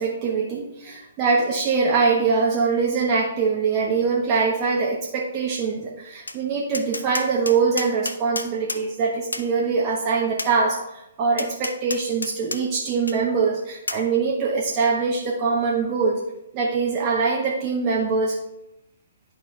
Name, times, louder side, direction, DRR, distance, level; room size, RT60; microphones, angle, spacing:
voice 1, 0.0-16.2 16.5-18.4, right 4 dB, 30° right, -2 dB, 0.9 m, -23 dB
Tap, 6.3-6.4 6.7-8.8 9.3-9.5 10.4-10.5 11.4-12.6 13.1-13.2 13.9-14.0, left 2 dB, 75° left, 0.5 m, -30 dB
10.5 x 4.4 x 3.2 m, 0.87 s
figure-of-eight pair, 125°, 0 cm